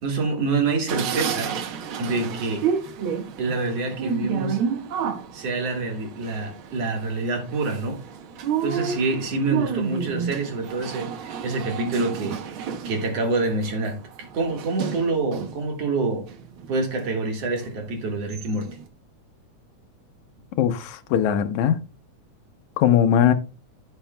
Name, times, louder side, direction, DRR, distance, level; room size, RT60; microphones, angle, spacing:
voice 1, 0.0-1.5 2.0-2.7 3.4-4.6 5.3-8.0 8.6-12.4 12.9-14.0 14.3-16.3 16.7-18.7, right 3 dB, 55° right, 2.5 m, -26 dB
sound 1, 0.9-15.7 16.1-17.1 17.6-17.7 18.0-18.8, right 7 dB, 75° right, 1.2 m, -31 dB
voice 2, 20.6-21.8 22.8-23.3, left 9 dB, 75° left, 2.1 m, -19 dB
14.5 x 5.7 x 2.2 m
omnidirectional pair, 3.5 m